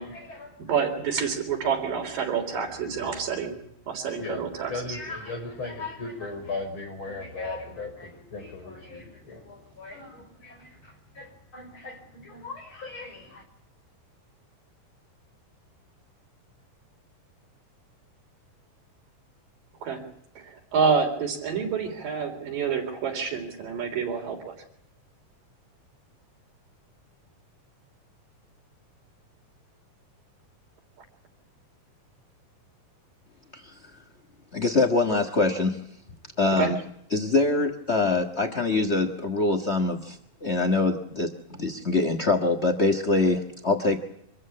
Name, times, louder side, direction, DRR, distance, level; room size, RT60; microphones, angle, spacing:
voice 1, 0.0-0.7 2.7-3.3 4.2-13.4, left 3 dB, 35° left, 6.6 m, -38 dB
voice 2, 0.7-3.6 3.9-4.7 19.8-20.1 20.5-24.5 36.6-36.7, right 6 dB, 85° right, 5.3 m, -28 dB
voice 3, 34.5-35.8 36.4-36.8 37.1-44.0, left 3 dB, 75° left, 0.6 m, -24 dB
25.0 x 14.5 x 8.6 m
omnidirectional pair, 3.8 m